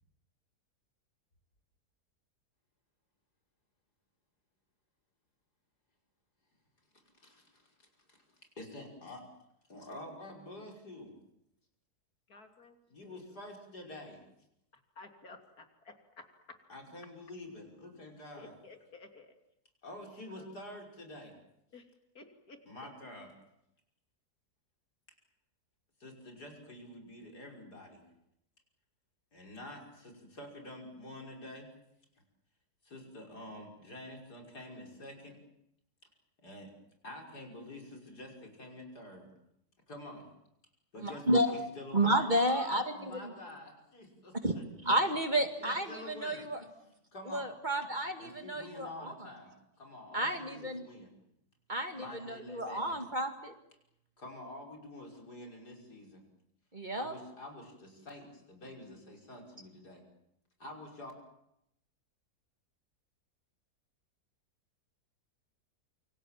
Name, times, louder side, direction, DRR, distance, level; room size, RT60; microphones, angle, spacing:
voice 1, 7.2-7.9 8.6-9.2 9.7-11.1 12.9-14.2 16.7-18.6 19.8-21.3 22.6-23.3 26.0-28.0 29.3-31.7 32.8-35.4 36.4-36.7 37.0-39.3 39.9-40.3 40.9-41.4 41.8-45.0 45.6-46.5 47.1-47.5 48.2-51.1 52.0-53.0 54.2-56.2 56.9-60.0 60.6-61.1, left 1 dB, 85° left, 6.4 m, -48 dB
voice 2, 12.3-12.8 13.0-13.2 15.0-15.9 18.4-19.3 21.7-21.8 22.2-22.6, left 3 dB, 70° left, 3.5 m, -53 dB
voice 3, 41.0-41.6 41.9-43.3 44.4-44.6 44.8-46.6 47.2-49.3 50.1-50.8 51.7-53.5 56.7-57.1, right 1 dB, 30° right, 2.2 m, -31 dB
28.0 x 25.5 x 7.5 m
omnidirectional pair, 1.7 m